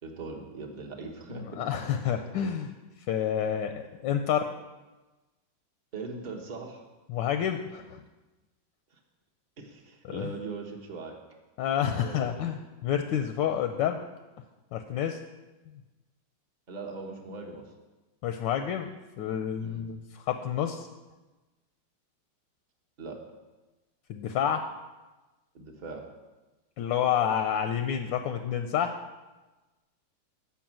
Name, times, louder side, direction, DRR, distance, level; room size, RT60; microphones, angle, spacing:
voice 1, 0.0-1.6 5.9-6.8 8.9-9.0 9.6-11.2 11.9-12.4 16.7-17.7 19.6-19.8 23.0-23.2 25.5-26.0, right 4 dB, 30° right, 1 dB, 0.9 m, -40 dB
voice 2, 1.3-2.7 3.1-3.7 4.0-4.5 7.1-8.0 10.0-10.3 11.6-14.0 14.7-15.2 18.2-20.9 24.1-24.7 26.8-29.0, left 9 dB, 75° left, 7 dB, 1.2 m, -29 dB
7.1 x 5.9 x 7.4 m, 1.2 s
omnidirectional pair, 2.3 m